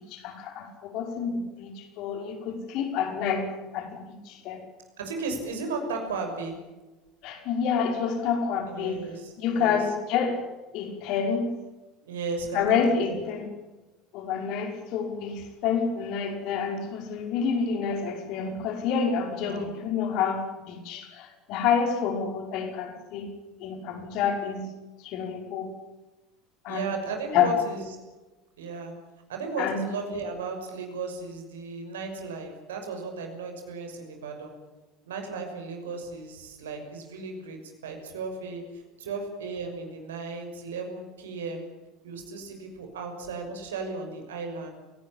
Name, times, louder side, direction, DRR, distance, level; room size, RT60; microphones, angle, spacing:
voice 1, 0.0-4.6 7.2-9.1 9.4-10.4 10.7-11.5 12.5-13.4 14.1-23.3 23.6-24.7 25.0-25.8 26.6-26.9 27.3-27.5 29.6-29.8, left 6 dB, 50° left, 5 dB, 5.5 m, -28 dB
voice 2, 5.0-6.5 8.7-9.8 12.0-13.2 19.4-19.8 26.7-28.0 28.6-28.9 29.3-34.5 35.1-41.6 42.0-44.7, right 4 dB, 70° right, 4 dB, 6.3 m, -35 dB
29.5 x 18.5 x 8.9 m, 1.2 s
figure-of-eight pair, 70°, 0 cm